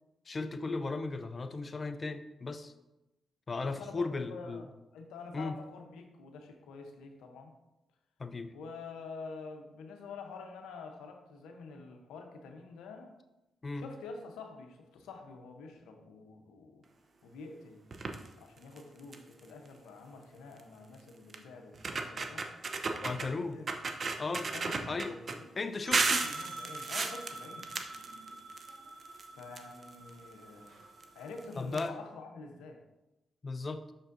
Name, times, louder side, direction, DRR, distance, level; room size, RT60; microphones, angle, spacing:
voice 1, 0.3-2.7 3.5-4.6 5.3-5.5 8.2-8.5 13.6-13.9 23.0-23.5 24.2-24.5 24.9-25.1 25.6-26.3 31.6-31.9 33.4-33.8, left 3 dB, 40° left, 9 dB, 0.5 m, -36 dB
voice 2, 3.6-7.5 8.5-13.2 13.7-16.8 17.2-17.8 18.4-22.5 22.9-23.7 24.5-25.5 26.1-27.7 29.3-30.7 31.1-32.8, left 4 dB, 85° left, 4 dB, 0.7 m, -47 dB
sound 1, 17.9-18.3 18.8-18.9 19.1-19.4 20.6-20.7 21.3-21.4 21.7-23.3 23.7-25.4 25.9-28.7 29.0-30.1 31.0-31.1 31.4-31.5 31.7-31.8, right 4 dB, 50° right, 0.6 m, -34 dB
sound 2, 25.8-31.5, right 3 dB, 75° right, 1.0 m, -46 dB
6.4 x 6.1 x 2.6 m, 0.97 s
supercardioid pair, 55°, 0 cm